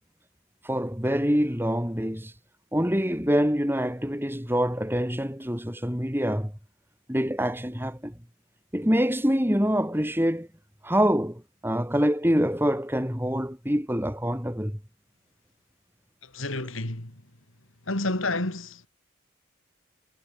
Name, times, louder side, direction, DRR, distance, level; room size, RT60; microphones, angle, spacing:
voice 1, 0.6-2.3 2.7-6.5 7.1-8.2 8.7-10.5 10.8-14.8, equal, 10° right, 5.9 m, -25 dB
voice 2, 16.2-17.2 17.9-18.9, left 2 dB, 75° left, 3.4 m, -30 dB
head